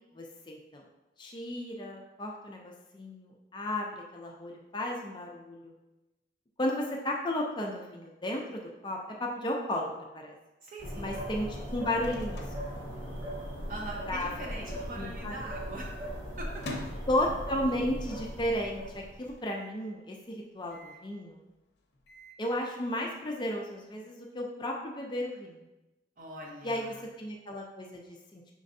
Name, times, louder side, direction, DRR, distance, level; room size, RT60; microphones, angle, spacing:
voice 1, 0.2-0.8 1.2-5.7 6.6-10.3 11.0-11.5 11.7-12.6 14.1-14.3 14.6-15.4 17.1-21.4 22.4-25.6 26.6-28.4, left 1 dB, 25° left, 0 dB, 0.4 m, -34 dB
voice 2, 10.6-11.1 13.7-16.1 16.4-16.5 26.2-27.1, right 1 dB, 45° right, -2 dB, 1.0 m, -42 dB
sound 1, 10.8-19.3, equal, 30° right, 1.5 m, -39 dB
Microwave oven, 12.0-13.6 13.9-14.0 14.2-14.7 15.2-17.9 18.4-18.5 18.6-18.7 19.4-19.8 20.7-21.1 21.8-22.4, left 2 dB, 65° left, 0.7 m, -46 dB
6.2 x 3.2 x 2.6 m, 1.0 s
head